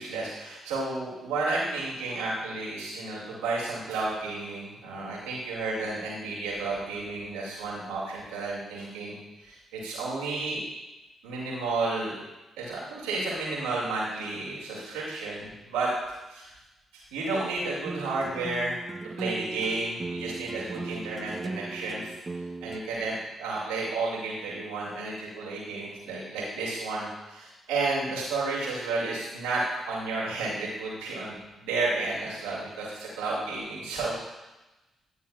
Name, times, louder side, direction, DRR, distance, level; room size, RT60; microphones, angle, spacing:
voice 1, 0.0-10.6 11.2-12.1 12.6-15.9 16.3-16.5 16.9-18.8 19.2-22.1 22.6-34.4, right 3 dB, 80° right, -6 dB, 2.4 m, -32 dB
sound 1, 17.9-22.8, right 3 dB, 30° right, 0.6 m, -37 dB
11.0 x 9.4 x 2.4 m, 1.0 s
hypercardioid pair, 40°, 0 cm